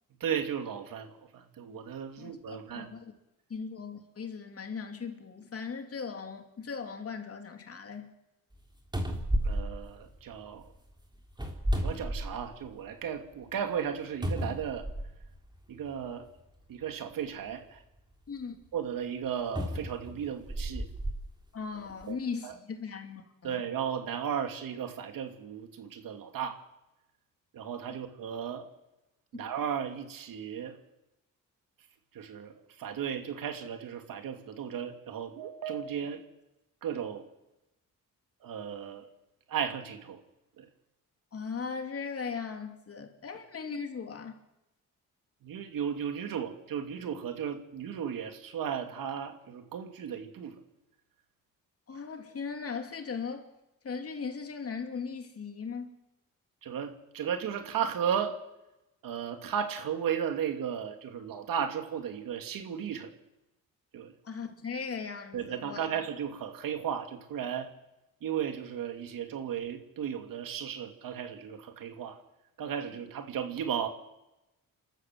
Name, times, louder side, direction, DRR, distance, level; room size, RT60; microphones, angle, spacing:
voice 1, 0.2-2.9 9.4-10.7 11.8-14.9 15.7-16.3 16.7-17.8 18.7-20.9 22.1-22.2 22.4-22.5 23.4-26.6 27.5-28.7 29.3-30.8 32.1-36.2 36.8-37.3 38.4-39.1 39.5-40.2 40.6-40.7 45.4-50.5 56.6-58.4 59.0-63.1 63.9-64.1 65.3-67.7 68.2-72.2 72.6-73.9, right 8 dB, 85° right, 2.6 m, -35 dB
voice 2, 2.2-3.2 3.5-8.1 18.3-18.6 21.5-23.7 29.3-29.5 41.3-44.4 51.9-53.5 53.8-55.9 64.2-65.9, left 5 dB, 45° left, 2.8 m, -38 dB
sound 1, 8.5-8.6 8.9-10.6 11.3-12.7 13.2-13.3 14.2-15.3 16.3-16.4 19.5-21.2 21.9-22.0, equal, 15° right, 3.5 m, -32 dB
29.5 x 13.0 x 7.7 m
cardioid pair, 110°, 33 cm